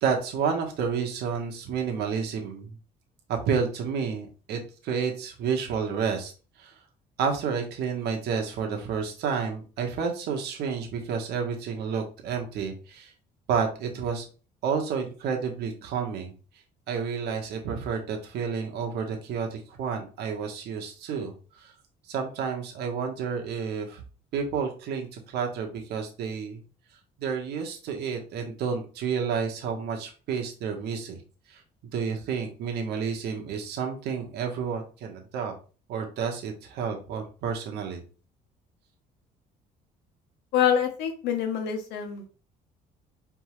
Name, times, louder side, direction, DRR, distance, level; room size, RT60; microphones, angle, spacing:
voice 1, 0.0-2.8 3.3-6.3 6.6-6.7 7.2-13.1 13.5-14.2 14.6-16.3 16.9-21.7 22.1-24.0 24.3-26.6 27.2-31.2 31.5-31.6 31.9-35.5 35.9-38.0, right 6 dB, 75° right, 3 dB, 1.2 m, -30 dB
voice 2, 40.5-42.3, left 8 dB, 85° left, 4 dB, 1.2 m, -26 dB
4.6 x 3.6 x 3.1 m, 0.36 s
cardioid pair, 110°, 17 cm